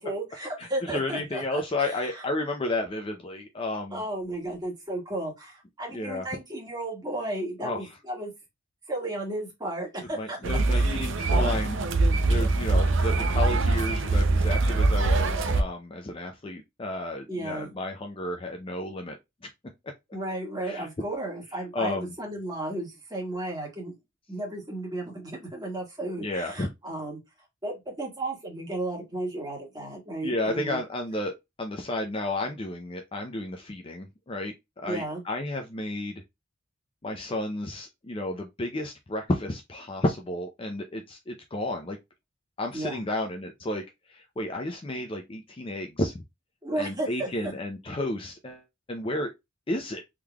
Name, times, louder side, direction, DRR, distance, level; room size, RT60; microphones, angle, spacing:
voice 1, 0.0-2.2 3.9-8.3 8.9-11.0 11.4-11.5 17.3-17.7 20.1-23.9 24.3-27.2 27.6-30.8 34.8-35.2 42.7-43.0 46.6-47.5, right 1 dB, 20° right, 1.6 m, -34 dB
voice 2, 0.6-4.0 5.9-6.2 7.6-7.9 10.2-19.2 20.6-20.9 21.7-22.1 26.2-26.7 30.2-36.2 37.0-42.0 42.6-43.8 44.1-46.2 46.7-49.3 49.7-50.0, left 1 dB, 25° left, 0.5 m, -32 dB
sound 1, 10.4-15.6, right 2 dB, 60° right, 0.6 m, -23 dB
3.7 x 3.1 x 2.3 m
head